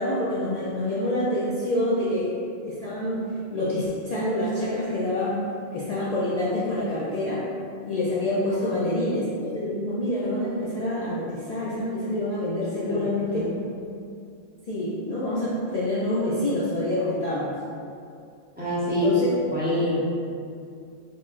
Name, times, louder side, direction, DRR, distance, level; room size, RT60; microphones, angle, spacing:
voice 1, 0.0-2.4 2.6-7.4 7.9-13.5 14.7-17.6 18.9-19.3, left 1 dB, 75° left, -8 dB, 0.3 m, -27 dB
voice 2, 18.6-19.1 19.5-20.1, equal, 10° right, -10 dB, 0.7 m, -26 dB
3.9 x 3.1 x 2.4 m, 2.4 s
omnidirectional pair, 1.3 m